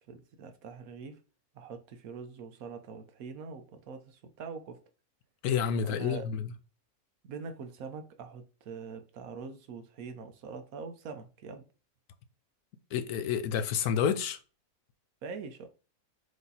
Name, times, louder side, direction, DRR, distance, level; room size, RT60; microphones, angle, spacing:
voice 1, 0.1-1.2 1.5-4.8 5.8-6.3 7.2-11.7 15.2-15.7, right 5 dB, 70° right, 1.1 m, -43 dB
voice 2, 5.4-6.5 12.9-14.4, left 8 dB, 75° left, 1.1 m, -29 dB
4.9 x 2.7 x 3.9 m
omnidirectional pair, 1.6 m